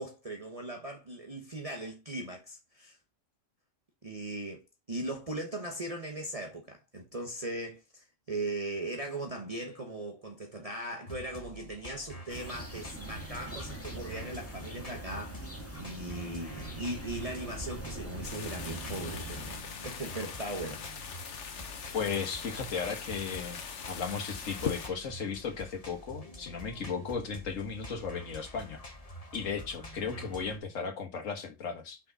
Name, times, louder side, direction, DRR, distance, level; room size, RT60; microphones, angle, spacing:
voice 1, 0.0-3.0 4.0-21.1, right 1 dB, 30° right, 1.1 m, -39 dB
sound 1, 11.1-30.6, left 1 dB, 30° left, 1.4 m, -47 dB
sound 2, 12.3-19.6, right 1 dB, 10° left, 1.6 m, -42 dB
sound 3, 18.2-24.9, left 6 dB, 65° left, 1.3 m, -41 dB
voice 2, 21.9-23.6 23.9-28.8 29.3-32.0, left 5 dB, 85° left, 1.7 m, -35 dB
6.0 x 5.7 x 4.0 m
omnidirectional pair, 1.3 m